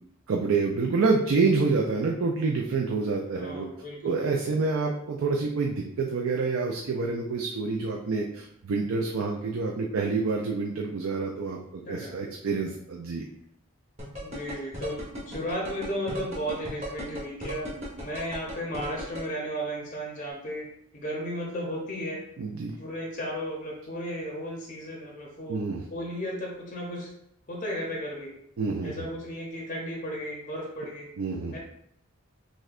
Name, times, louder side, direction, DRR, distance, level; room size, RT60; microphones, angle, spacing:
voice 1, 0.3-3.7 4.0-13.2 22.4-22.8 25.5-25.8 28.6-29.0 31.2-31.6, right 4 dB, 65° right, 1 dB, 0.4 m, -27 dB
voice 2, 3.4-4.3 5.2-5.4 11.8-12.2 14.2-22.2 22.8-27.1 27.5-28.3 28.8-31.1 31.5-31.6, equal, 35° left, -1 dB, 0.6 m, -35 dB
sound 1, 14.0-19.2, left 1 dB, 30° right, 1.2 m, -36 dB
6.2 x 2.2 x 2.4 m, 0.74 s
head